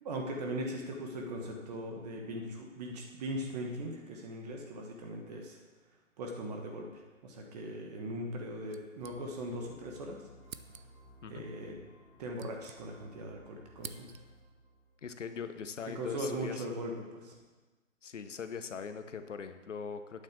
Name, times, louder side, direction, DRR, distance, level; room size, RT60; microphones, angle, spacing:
voice 1, 0.0-5.6 6.2-10.2 11.2-11.8 12.2-14.1 15.9-17.4, right 1 dB, 30° right, 1 dB, 1.4 m, -39 dB
sound 1, 8.7-9.7 9.9-10.0 10.4-11.1 12.0-13.2 13.5-14.5, right 6 dB, 85° right, 0.8 m, -51 dB
sound 2, 9.0-15.2, left 1 dB, 5° left, 1.1 m, -59 dB
voice 2, 15.0-16.6 18.0-20.2, left 6 dB, 65° left, 9 dB, 1.0 m, -41 dB
9.0 x 7.4 x 7.5 m, 1.3 s
figure-of-eight pair, 140°, 40 cm